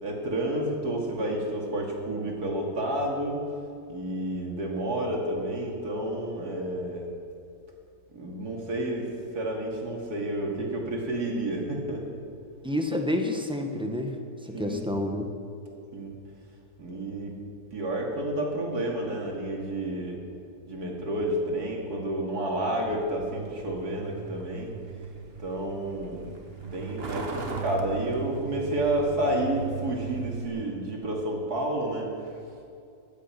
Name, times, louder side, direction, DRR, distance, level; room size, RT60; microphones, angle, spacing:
voice 1, 0.0-3.5 3.9-7.1 8.1-9.1 9.3-12.1 14.5-14.8 15.9-16.1 16.8-17.4 17.7-20.2 20.7-24.7 25.4-26.3 26.7-32.1, right 1 dB, 65° right, 0 dB, 2.8 m, -30 dB
voice 2, 12.6-14.2 14.4-15.3, left 1 dB, 5° right, 4 dB, 1.2 m, -29 dB
Truck, 22.9-30.5, right 5 dB, 40° right, 1.4 m, -38 dB
16.5 x 12.0 x 5.9 m, 2.5 s
omnidirectional pair, 1.8 m